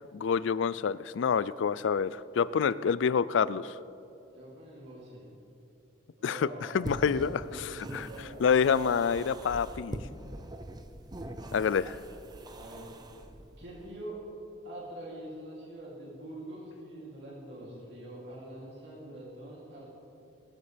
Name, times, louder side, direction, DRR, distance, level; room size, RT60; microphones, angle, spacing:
voice 1, 0.1-3.8 6.2-6.5 6.7-8.1 8.4-10.0 11.5-12.0, left 6 dB, 70° left, 17 dB, 0.4 m, -27 dB
voice 2, 4.3-5.4 6.2-8.4 12.5-13.0 13.6-14.2 14.6-19.9, right 1 dB, 55° right, -5 dB, 3.0 m, -45 dB
sound 1, 6.8-14.0, right 1 dB, 20° right, 0.6 m, -43 dB
20.0 x 12.5 x 3.4 m, 2.7 s
head